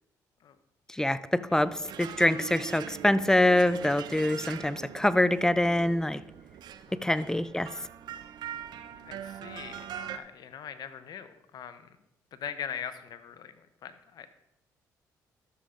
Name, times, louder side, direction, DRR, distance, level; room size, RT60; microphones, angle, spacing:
voice 1, 0.9-6.2 7.0-7.7, left 1 dB, 10° left, 16 dB, 0.5 m, -25 dB
sound 1, 1.5-10.2, right 9 dB, 70° right, 0.6 m, -42 dB
voice 2, 6.9-7.4 9.0-12.0 12.3-14.3, left 8 dB, 65° left, 11 dB, 0.9 m, -42 dB
12.5 x 7.0 x 3.8 m, 0.86 s
supercardioid pair, 65°, 7 cm